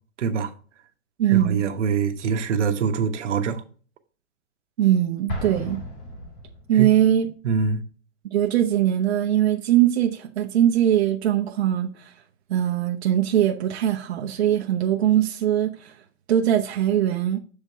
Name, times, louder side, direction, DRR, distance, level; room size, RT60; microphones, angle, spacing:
voice 1, 0.2-0.5 1.3-3.6 6.7-6.9 7.4-7.8, right 6 dB, 80° right, 1.2 m, -24 dB
voice 2, 1.2-1.6 4.8-5.8 6.7-7.3 8.3-12.1 12.5-15.9 16.3-17.4, right 11 dB, 60° right, 1.0 m, -21 dB
Explosion, 5.3-7.0, equal, 30° left, 2.0 m, -34 dB
7.4 x 5.1 x 3.5 m
hypercardioid pair, 170°, 35 cm